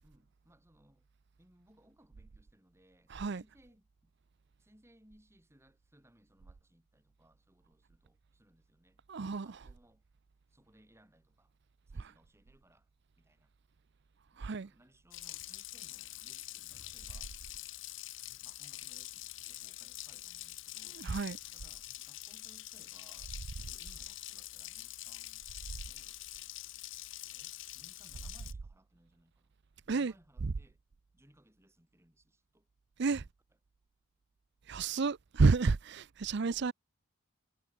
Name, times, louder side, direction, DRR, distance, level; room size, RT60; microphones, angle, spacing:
voice 1, 0.0-1.1 1.4-4.1 4.6-10.1 10.5-11.5 11.9-12.9 13.2-13.5 14.3-17.3 18.4-21.0 21.5-26.2 27.3-29.5 29.8-30.8 31.1-32.7 36.2-36.7, right 1 dB, 15° right, 5.8 m, -66 dB
voice 2, 3.1-3.4 9.1-9.6 14.4-14.7 21.0-21.4 29.9-30.1 30.4-30.5 33.0-33.2 34.7-36.7, right 4 dB, 55° right, 0.5 m, -30 dB
Water tap faucet, 15.1-28.5, left 15 dB, 65° left, 1.0 m, -46 dB
head